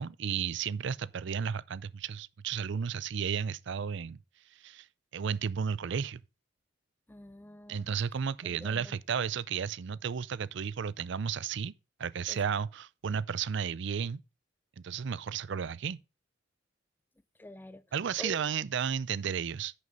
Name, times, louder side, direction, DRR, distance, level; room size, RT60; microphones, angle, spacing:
voice 1, 0.0-4.2 4.6-4.9 5.1-6.2 7.7-11.7 12.0-14.2 14.8-16.0 17.9-19.7, right 7 dB, 65° right, 0.5 m, -33 dB
voice 2, 7.1-7.9 8.4-8.9 12.3-12.4 17.4-17.8 18.2-18.4, left 1 dB, 10° left, 0.4 m, -46 dB
10.5 x 6.4 x 4.0 m
head